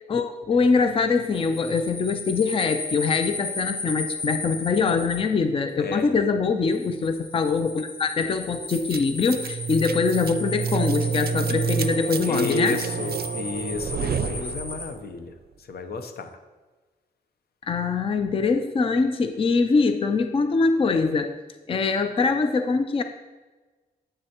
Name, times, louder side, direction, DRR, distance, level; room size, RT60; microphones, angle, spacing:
voice 1, 0.1-12.8 17.7-21.3 21.7-23.0, left 4 dB, 35° left, 8 dB, 0.4 m, -23 dB
sound 1, 1.2-5.2 6.7-14.9, left 3 dB, 60° left, 2.3 m, -35 dB
voice 2, 5.8-6.2 12.2-16.4, left 3 dB, 80° left, 7 dB, 0.9 m, -31 dB
sound 2, 8.7-15.0, right 7 dB, 75° right, 0.4 m, -29 dB
9.5 x 7.9 x 3.0 m, 1.3 s
wide cardioid pair, 125°, 16 cm